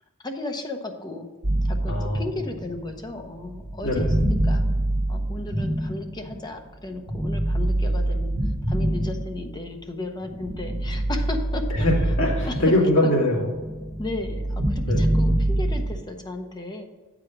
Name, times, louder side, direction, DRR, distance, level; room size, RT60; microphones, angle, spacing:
voice 1, 0.2-1.3 1.7-4.1 4.4-4.6 5.1-8.3 8.7-11.6 12.4-12.6 13.0-13.1 14.0-16.9, left 2 dB, 20° left, 4 dB, 0.8 m, -34 dB
sound 1, 1.4-6.5 7.1-9.7 10.2-13.1 13.3-16.0, right 1 dB, 85° right, 1.3 m, -25 dB
voice 2, 1.9-2.2 3.8-4.1 11.7-13.5 14.8-15.1, left 1 dB, 65° left, -4 dB, 2.5 m, -22 dB
8.3 x 5.0 x 5.8 m, 1.4 s
head